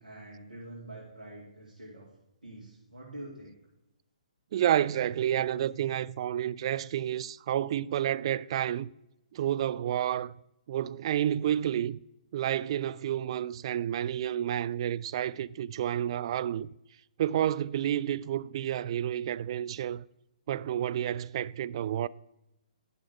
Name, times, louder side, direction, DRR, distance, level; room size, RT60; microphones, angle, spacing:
voice 1, 0.0-2.1 2.4-3.6, right 1 dB, 80° right, 2.6 m, -46 dB
voice 2, 4.5-8.9 9.3-10.3 10.7-12.0 12.3-16.7 17.2-20.0 20.5-22.1, right 11 dB, 40° right, 0.3 m, -30 dB
11.0 x 6.3 x 4.9 m
figure-of-eight pair, 130°, 4 cm